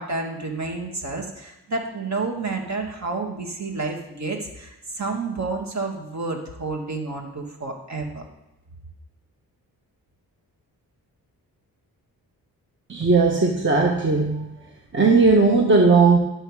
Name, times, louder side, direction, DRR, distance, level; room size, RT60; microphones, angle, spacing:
voice 1, 0.0-8.2, right 3 dB, 45° right, 2 dB, 1.8 m, -30 dB
voice 2, 12.9-14.5 14.9-16.2, right 4 dB, 30° right, 1 dB, 1.1 m, -17 dB
11.0 x 6.7 x 4.8 m, 0.94 s
wide cardioid pair, 105°, 38 cm